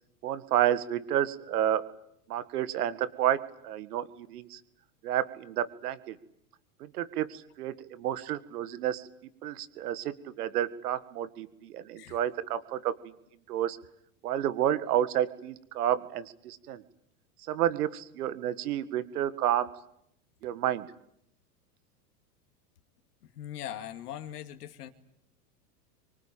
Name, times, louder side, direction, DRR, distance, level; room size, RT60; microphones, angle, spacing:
voice 1, 0.2-1.8 2.3-3.4 3.6-4.6 5.0-6.2 6.8-9.1 9.4-12.9 13.5-13.8 14.2-16.8 17.5-19.7 20.4-20.9, right 11 dB, 70° right, 14 dB, 1.9 m, -30 dB
voice 2, 23.3-24.9, left 11 dB, 70° left, 6 dB, 2.4 m, -40 dB
26.0 x 24.5 x 9.0 m, 0.76 s
hypercardioid pair, 95°, 48 cm